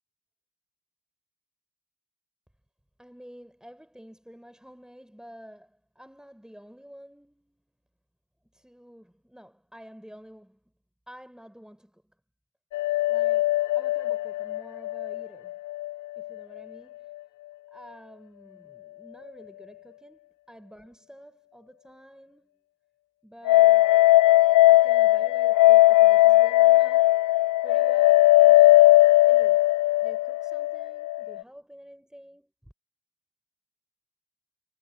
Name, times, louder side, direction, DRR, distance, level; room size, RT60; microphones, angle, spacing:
voice 1, 3.0-7.7 8.5-10.7 11.1-12.1 13.1-15.6 16.2-17.1 17.7-22.7 23.2-24.1 24.7-27.2 27.6-29.6 30.0-32.7, equal, ahead, 6.5 m, -49 dB
sound 1, 12.7-15.9 16.2-16.3 23.5-31.4, left 16 dB, 85° left, 0.7 m, -19 dB
cardioid pair, 90°, 30 cm